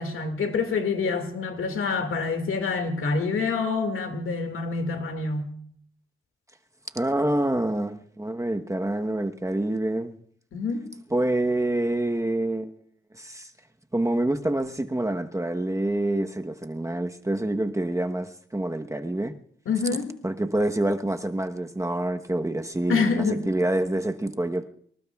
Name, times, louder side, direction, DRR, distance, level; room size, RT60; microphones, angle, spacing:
voice 1, 0.0-5.5 10.5-10.9 19.7-20.1 22.9-23.4, left 4 dB, 85° left, 2.1 m, -26 dB
voice 2, 6.9-10.1 11.1-12.7 13.1-13.5 13.9-19.3 20.2-24.7, right 1 dB, 15° right, 1.0 m, -27 dB
25.0 x 19.5 x 2.4 m
cardioid pair, 65°, 21 cm